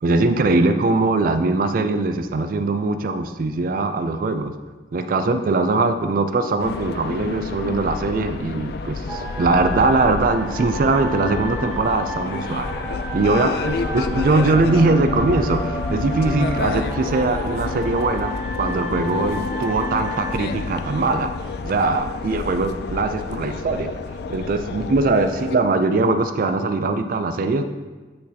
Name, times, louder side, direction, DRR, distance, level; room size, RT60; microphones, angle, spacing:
voice 1, 0.0-4.5 4.9-12.7 13.1-21.3 21.6-23.9 24.3-27.6, right 3 dB, 50° right, 8 dB, 0.3 m, -21 dB
sound 1, 6.6-25.6, left 4 dB, 60° left, 0.3 m, -29 dB
sound 2, 9.1-21.7, equal, 5° right, 1.0 m, -33 dB
8.5 x 4.0 x 2.8 m, 1.3 s
head